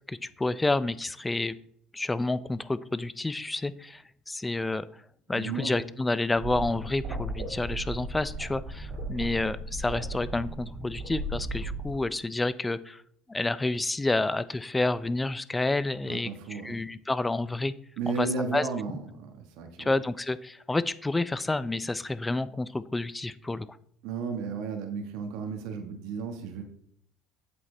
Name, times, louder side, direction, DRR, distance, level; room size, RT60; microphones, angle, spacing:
voice 1, 0.1-1.6 1.9-5.0 5.3-13.0 13.3-17.7 18.1-18.3 18.5-18.7 19.8-23.7, left 2 dB, 10° left, 16 dB, 0.4 m, -29 dB
voice 2, 5.3-5.8 16.0-16.8 18.0-19.9 24.0-26.6, right 5 dB, 75° right, 5 dB, 1.3 m, -34 dB
sound 1, 6.3-11.9, right 2 dB, 45° right, 2.1 m, -36 dB
8.1 x 7.7 x 3.3 m, 0.65 s
cardioid pair, 125°, 0 cm